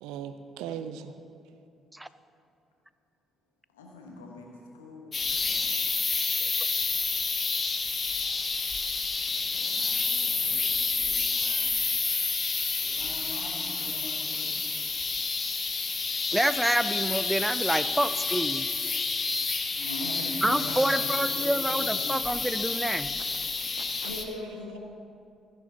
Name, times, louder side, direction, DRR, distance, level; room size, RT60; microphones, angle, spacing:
voice 1, 0.0-1.1 23.2-24.1, right 8 dB, 70° right, 10 dB, 0.5 m, -40 dB
voice 2, 3.7-5.8 9.0-11.7 12.8-14.5 19.7-22.2 24.0-24.8, left 2 dB, 85° left, 0 dB, 1.2 m, -42 dB
sound 1, 5.1-24.2, left 4 dB, 40° left, 1.0 m, -29 dB
voice 3, 16.3-18.7 20.4-23.1, right 1 dB, 10° right, 14 dB, 0.4 m, -27 dB
15.0 x 6.6 x 4.0 m, 2.5 s
figure-of-eight pair, 45°, 0 cm